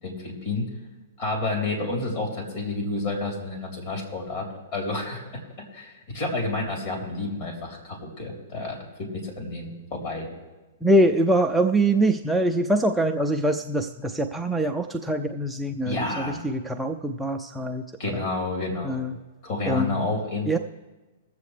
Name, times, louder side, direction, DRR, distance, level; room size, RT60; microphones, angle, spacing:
voice 1, 0.0-0.7 1.2-4.4 4.7-5.2 5.7-10.3 15.8-16.4 18.0-19.0 19.4-20.6, left 2 dB, 45° left, -1 dB, 3.6 m, -30 dB
voice 2, 10.8-16.0 16.3-17.8 18.8-19.1 19.7-20.0 20.5-20.6, right 1 dB, ahead, 2 dB, 0.4 m, -23 dB
21.5 x 7.5 x 3.3 m, 1.2 s
hypercardioid pair, 150°, 0 cm